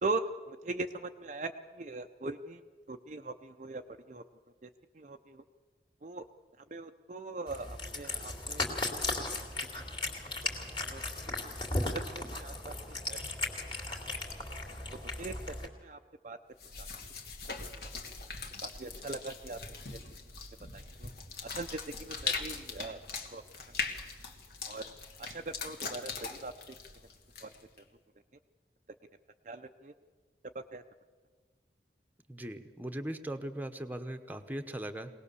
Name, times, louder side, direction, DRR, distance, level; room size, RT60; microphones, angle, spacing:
voice 1, 0.0-2.6 2.9-3.8 4.1-4.2 4.6-4.7 4.9-5.4 6.0-6.2 6.7-8.7 10.8-11.0 11.3-11.4 12.4-13.2 15.0-15.3 15.8-16.0 16.2-16.4 16.8-16.9 18.6-19.6 19.9-20.0 20.7-21.1 21.5-23.0 23.3-23.4 24.7-24.8 25.2-26.5 27.4-27.5 29.5-29.9 30.7-30.8, right 3 dB, 40° right, 6 dB, 0.6 m, -40 dB
Cat, 7.5-15.7, left 2 dB, 25° left, 2.5 m, -36 dB
sound 1, 16.6-27.8, left 4 dB, 60° left, 2.0 m, -41 dB
voice 2, 32.3-35.1, right 1 dB, 10° right, 6 dB, 1.0 m, -39 dB
22.5 x 18.5 x 7.0 m, 1.5 s
head